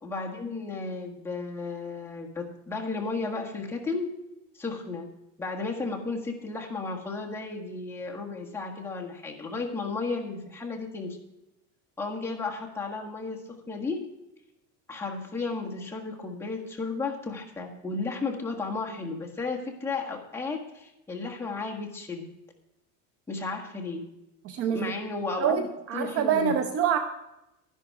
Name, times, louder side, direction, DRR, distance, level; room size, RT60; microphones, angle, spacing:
voice 1, 0.0-4.2 4.5-5.1 5.4-11.2 12.0-14.1 14.9-22.3 23.3-24.1 24.7-25.7 25.9-26.6, left 3 dB, 5° left, -1 dB, 1.6 m, -33 dB
voice 2, 24.4-24.9 25.4-25.6 25.9-27.0, right 8 dB, 35° right, 8 dB, 0.8 m, -25 dB
12.0 x 11.0 x 4.8 m, 0.89 s
cardioid pair, 165°, 39 cm